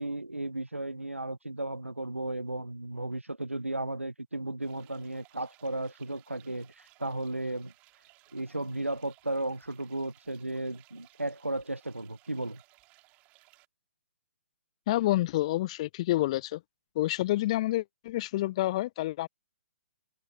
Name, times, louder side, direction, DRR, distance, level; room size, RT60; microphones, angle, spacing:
voice 1, 0.0-7.7 8.3-12.6, right 2 dB, 85° right, 0.7 m, -35 dB
sound 1, 4.6-13.7, right 22 dB, 20° right, 2.4 m, -62 dB
voice 2, 14.9-16.6 17.0-19.3, left 16 dB, 30° left, 0.4 m, -28 dB
figure-of-eight pair, 130°, 7 cm